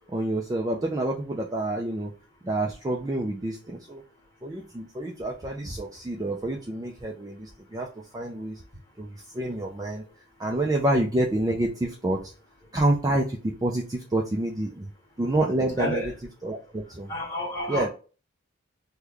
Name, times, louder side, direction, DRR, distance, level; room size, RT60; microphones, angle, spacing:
voice 1, 0.1-2.1 2.4-4.0 4.4-7.9 8.1-8.6 9.0-10.0 10.4-12.3 12.7-14.9 15.2-16.0 16.4-17.1 17.7-17.9, right 1 dB, 20° right, 0.4 m, -28 dB
voice 2, 15.8-16.1 17.1-17.9, equal, 15° left, 1.7 m, -29 dB
3.1 x 2.2 x 3.6 m
head